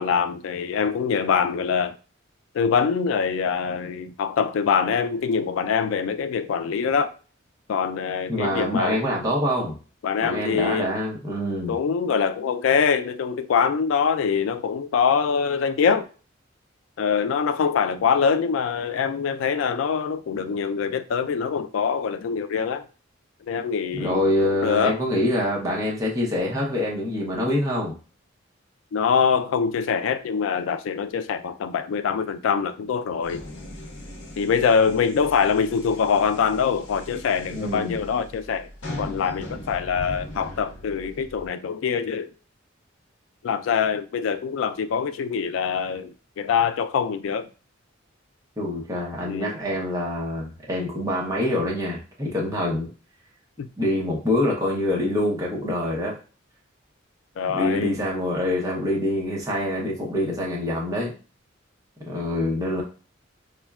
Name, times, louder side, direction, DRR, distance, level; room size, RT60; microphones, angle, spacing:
voice 1, 0.0-2.0 2.5-7.1 7.7-9.0 10.0-10.9 11.7-16.1 17.0-22.9 23.5-25.0 28.9-33.4 34.4-38.7 39.0-42.3 43.4-47.5 49.3-49.5 53.6-53.7 57.4-57.9, left 6 dB, 80° left, 0.3 m, -24 dB
voice 2, 8.3-9.8 10.2-11.7 23.9-28.0 37.5-38.0 48.6-52.9 53.8-56.2 57.5-61.1 62.1-62.8, left 1 dB, 15° right, 0.8 m, -25 dB
sound 1, 33.2-41.5, left 1 dB, 60° left, 0.7 m, -39 dB
4.9 x 2.2 x 2.3 m
head